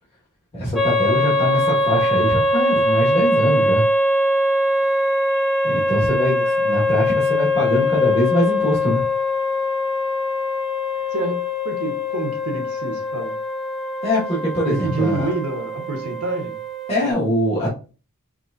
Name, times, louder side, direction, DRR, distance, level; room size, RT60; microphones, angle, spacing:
voice 1, 0.5-3.8 5.6-9.0 14.0-15.3 16.9-17.7, equal, 25° left, -7 dB, 1.6 m, -22 dB
sound 1, 0.8-17.1, left 1 dB, ahead, 1.0 m, -22 dB
voice 2, 11.1-13.3 14.7-16.5, right 2 dB, 75° right, 3 dB, 1.2 m, -27 dB
6.0 x 3.0 x 2.6 m, 0.35 s
head